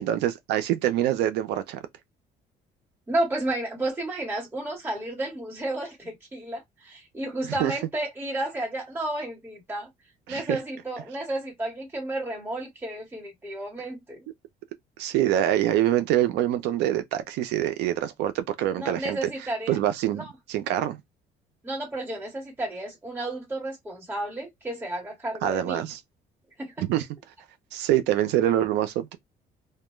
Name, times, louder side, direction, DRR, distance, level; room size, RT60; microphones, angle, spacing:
voice 1, 0.0-1.8 7.6-7.7 10.3-10.6 15.0-19.2 19.7-21.0 25.4-26.0 26.8-27.1 27.7-29.2, right 12 dB, 85° right, 0.5 m, -25 dB
voice 2, 3.1-9.9 10.3-14.2 18.8-19.8 20.1-20.3 21.6-25.8 26.6-26.9, right 1 dB, 15° right, 1.3 m, -32 dB
2.1 x 2.1 x 3.0 m
cardioid pair, 110°, 17 cm